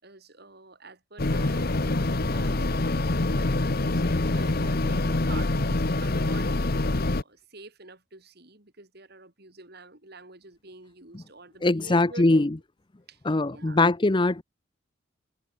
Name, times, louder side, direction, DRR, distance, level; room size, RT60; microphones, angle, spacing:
voice 1, 0.0-6.5 6.9-12.5 13.1-13.2 13.5-13.8, right 3 dB, 55° right, 5.7 m, -47 dB
sound 1, 1.2-7.2, left 2 dB, 50° left, 1.1 m, -25 dB
voice 2, 11.6-12.5 13.2-14.4, left 2 dB, 25° left, 0.7 m, -22 dB
head